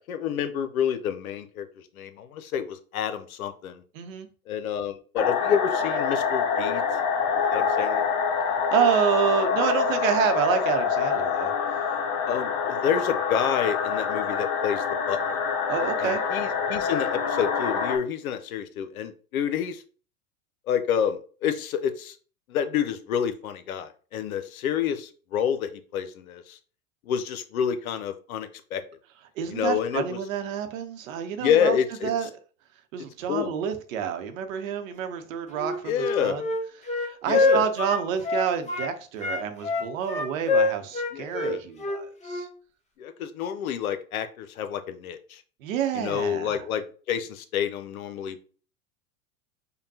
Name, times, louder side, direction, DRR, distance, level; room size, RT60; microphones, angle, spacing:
voice 1, 0.1-3.8 4.5-6.8 7.5-8.1 12.3-15.4 16.0-19.8 20.7-22.2 22.5-26.6 27.1-28.8 29.5-30.2 31.4-32.1 33.3-33.6 35.9-36.4 37.2-37.7 41.1-41.6 43.0-45.4 45.9-48.4, left 8 dB, 85° left, 0.7 m, -28 dB
voice 2, 3.9-4.3 8.7-11.5 15.7-16.2 29.4-32.3 32.9-36.4 36.8-42.5 45.6-46.7, right 8 dB, 70° right, 0.8 m, -28 dB
sound 1, 5.2-18.0, left 6 dB, 45° left, 0.8 m, -26 dB
Wind instrument woodwind instrument, 35.5-38.9 39.2-42.5, left 3 dB, 15° left, 0.7 m, -25 dB
5.2 x 2.2 x 2.7 m
hypercardioid pair, 100°, 41 cm